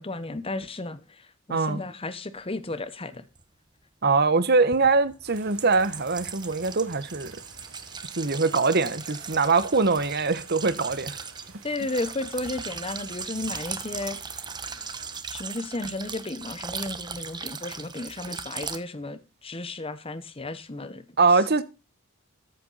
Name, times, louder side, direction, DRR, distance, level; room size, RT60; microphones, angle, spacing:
voice 1, 0.0-3.3 11.6-14.2 15.3-21.0, left 2 dB, 25° left, 1.0 m, -33 dB
voice 2, 1.5-1.8 4.0-7.3 8.2-11.2 21.2-21.6, right 4 dB, 50° right, 1.1 m, -22 dB
sound 1, 3.3-3.4 4.7-18.8, right 5 dB, 20° right, 1.0 m, -38 dB
sound 2, 5.2-15.2, right 4 dB, 70° right, 3.6 m, -51 dB
14.0 x 7.8 x 4.1 m
head